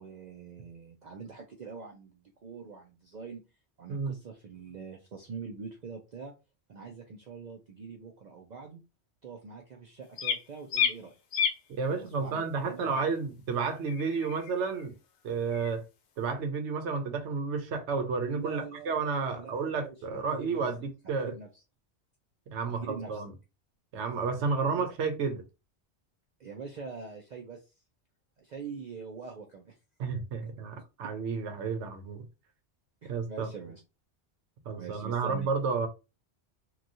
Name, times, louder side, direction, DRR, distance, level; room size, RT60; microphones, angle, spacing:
voice 1, 0.0-3.4 3.8-6.3 6.7-8.8 9.2-11.1 11.9-13.0 18.3-20.6 21.2-21.5 22.8-23.2 24.8-24.9 26.4-27.7 28.4-29.8 33.0-33.8 34.8-35.5, right 5 dB, 55° right, 0.5 m, -44 dB
sound 1, 10.2-10.4 10.7-10.9 11.3-11.6 12.9-13.0 13.9-14.9 15.5-15.7, left 7 dB, 80° left, 0.9 m, -30 dB
voice 2, 11.8-15.0 15.2-15.8 16.2-21.3 22.5-23.3 23.9-25.4 30.0-32.3 33.0-33.5 34.6-35.9, right 5 dB, 90° right, 1.0 m, -31 dB
3.0 x 2.3 x 2.6 m
omnidirectional pair, 1.1 m